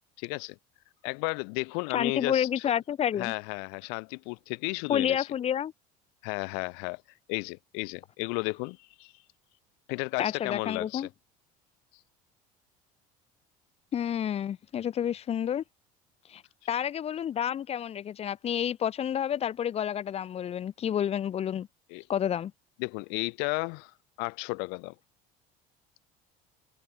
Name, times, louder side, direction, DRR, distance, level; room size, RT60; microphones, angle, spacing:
voice 1, 0.2-0.6 1.0-2.6 3.2-5.3 6.2-7.0 7.3-9.1 9.9-11.1 21.9-22.0 22.8-23.9 24.2-24.9, left 39 dB, 75° left, 0.6 m, -33 dB
voice 2, 1.9-3.3 4.9-5.7 10.2-11.1 13.9-15.6 16.3-16.4 16.7-21.7 22.1-22.5, left 9 dB, 35° left, 0.9 m, -29 dB
supercardioid pair, 105°, 17 cm